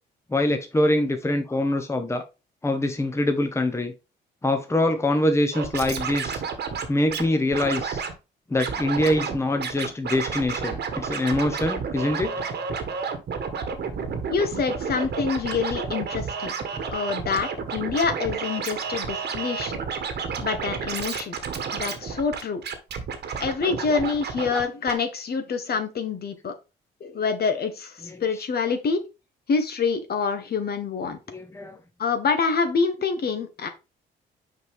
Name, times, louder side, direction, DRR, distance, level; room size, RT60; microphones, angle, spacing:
voice 1, 0.3-2.2 2.6-3.9 4.4-6.4 6.9-8.0 8.5-12.3 31.3-31.8, left 1 dB, 15° left, 0.9 m, -24 dB
Scratching (performance technique), 5.5-7.2 7.5-8.1 8.6-9.3 9.6-24.6 24.9-25.0, right 6 dB, 60° right, 1.3 m, -31 dB
voice 2, 14.3-16.5 16.9-19.8 20.4-21.4 21.7-22.6 23.4-26.5 27.0-29.0 29.5-31.2 32.0-33.7, left 5 dB, 55° left, 1.3 m, -26 dB
5.8 x 4.8 x 3.4 m
cardioid pair, 80°, 19 cm